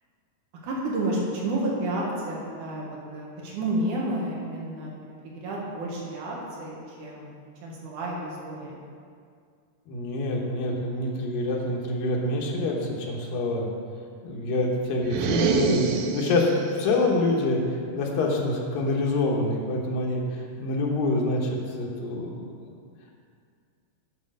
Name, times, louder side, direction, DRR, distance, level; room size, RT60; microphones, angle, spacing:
voice 1, 0.6-4.9 5.2-7.3 7.6-8.8, right 1 dB, 70° right, -3 dB, 2.8 m, -30 dB
voice 2, 9.9-13.7 14.2-16.5 16.8-17.6 17.9-22.4, left 2 dB, 85° left, -1 dB, 2.9 m, -26 dB
sound 1, 15.0-16.7, right 6 dB, 85° right, 2.3 m, -26 dB
9.6 x 5.0 x 6.3 m, 2.1 s
omnidirectional pair, 3.9 m